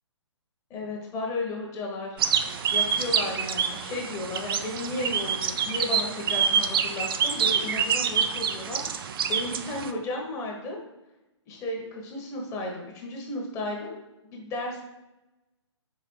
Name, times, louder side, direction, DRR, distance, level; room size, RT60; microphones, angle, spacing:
voice 1, 0.7-2.1 2.7-10.8 11.5-14.0 14.3-14.8, left 2 dB, 20° left, 0 dB, 1.2 m, -34 dB
sound 1, 2.2-9.9, right 7 dB, 50° right, 0.4 m, -27 dB
5.0 x 4.7 x 4.7 m, 0.95 s
figure-of-eight pair, 135°, 16 cm